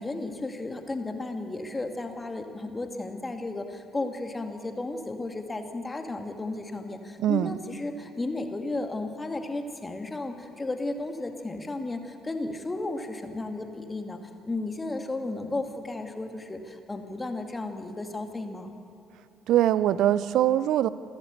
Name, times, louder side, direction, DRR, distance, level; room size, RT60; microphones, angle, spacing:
voice 1, 0.0-14.2 14.4-18.7, left 2 dB, 20° left, 5 dB, 2.3 m, -34 dB
voice 2, 7.2-7.5 19.5-20.9, right 12 dB, 60° right, 17 dB, 0.6 m, -22 dB
28.0 x 13.0 x 8.3 m, 2.6 s
figure-of-eight pair, 45°, 0 cm